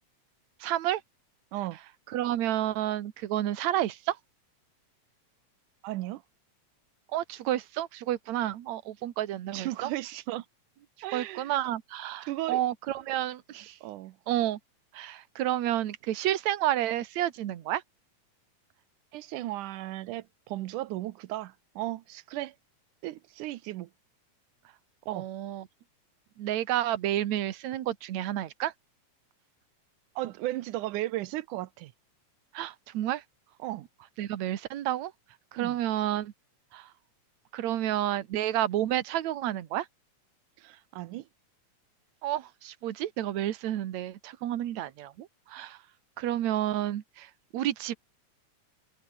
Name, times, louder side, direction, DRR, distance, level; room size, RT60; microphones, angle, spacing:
voice 1, 0.6-1.0 2.1-4.2 7.1-9.9 11.1-13.8 14.3-14.6 14.9-17.8 25.1-25.7 26.4-28.7 32.5-33.2 34.2-35.1 35.5-36.3 36.7-36.9 37.5-39.9 42.2-45.8 46.2-47.9, right 12 dB, 70° right, 2.6 m, -30 dB
voice 2, 5.8-6.2 9.5-10.4 11.0-11.5 12.3-12.6 13.8-14.2 19.1-22.6 23.0-23.9 25.1-25.3 30.2-31.9 33.6-33.9 35.6-35.7 40.6-41.3, right 16 dB, 90° right, 2.4 m, -35 dB
omnidirectional pair, 3.5 m